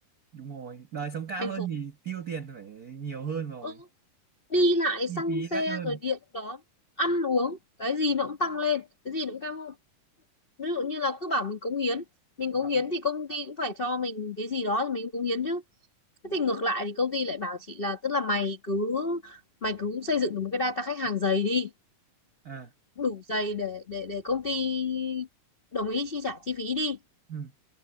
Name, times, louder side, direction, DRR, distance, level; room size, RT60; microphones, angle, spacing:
voice 1, 0.3-3.8 5.1-6.0 12.6-12.8 16.3-16.4 22.4-22.7 27.3-27.5, right 7 dB, 85° right, 0.8 m, -36 dB
voice 2, 4.5-6.6 7.0-9.7 10.6-12.0 12.4-15.6 16.2-21.7 23.0-25.3 25.7-27.0, left 2 dB, 75° left, 0.5 m, -29 dB
omnidirectional pair, 3.6 m